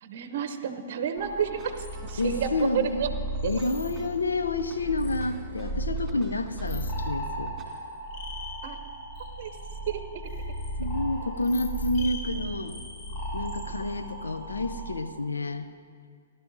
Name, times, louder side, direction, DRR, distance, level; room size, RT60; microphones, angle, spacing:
voice 1, 0.0-3.1 3.4-3.5 8.6-8.8 9.4-9.5 9.9-10.2, right 8 dB, 55° right, 9 dB, 0.7 m, -30 dB
sound 1, 1.2-15.0, right 2 dB, 45° left, 2.2 m, -36 dB
sound 2, 1.5-7.6, right 4 dB, 15° right, 2.1 m, -52 dB
voice 2, 2.2-3.0 3.4-7.5 10.8-12.8 13.3-15.7, left 2 dB, 85° left, 9 dB, 0.6 m, -29 dB
17.5 x 12.0 x 2.7 m, 2.1 s
hypercardioid pair, 125°, 0 cm